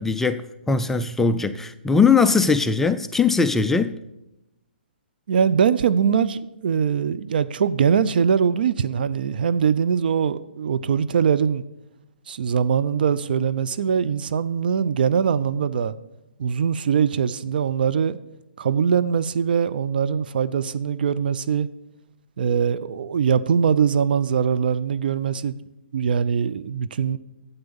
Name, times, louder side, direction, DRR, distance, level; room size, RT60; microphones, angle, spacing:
voice 1, 0.0-3.9, left 5 dB, 5° left, 0.3 m, -20 dB
voice 2, 5.3-11.6 12.3-15.9 16.4-18.2 18.6-21.7 22.4-25.6 25.9-27.2, right 7 dB, 60° right, 0.5 m, -22 dB
9.5 x 8.0 x 7.0 m
hypercardioid pair, 140°, 6 cm